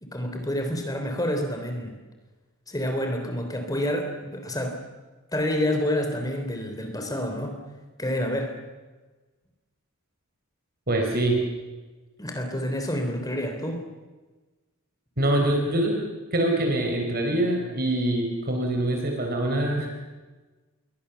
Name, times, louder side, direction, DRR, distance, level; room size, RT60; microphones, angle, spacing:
voice 1, 0.0-1.9 2.7-4.8 5.3-7.6 8.0-8.6 12.2-13.8, left 1 dB, 15° left, 4 dB, 3.4 m, -28 dB
voice 2, 10.9-11.4 15.2-16.0 16.3-19.9, right 1 dB, 45° right, 2 dB, 4.3 m, -24 dB
29.5 x 22.5 x 7.0 m, 1.3 s
head